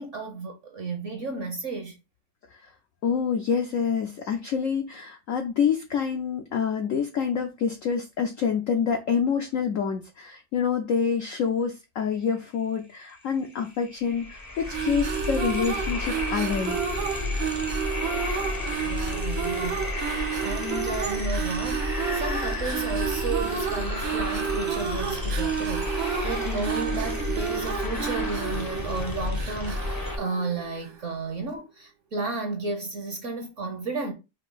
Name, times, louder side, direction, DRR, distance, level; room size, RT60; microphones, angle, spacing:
voice 1, 0.0-1.9 18.8-19.9 20.2-34.1, right 3 dB, 50° right, 1.0 m, -33 dB
voice 2, 3.0-16.8, left 6 dB, 70° left, 0.7 m, -27 dB
sound 1, 13.2-13.3 13.5-30.2, left 2 dB, 25° left, 0.4 m, -32 dB
sound 2, 14.6-31.1, right 7 dB, 85° right, 1.6 m, -31 dB
4.9 x 2.6 x 3.9 m
omnidirectional pair, 2.0 m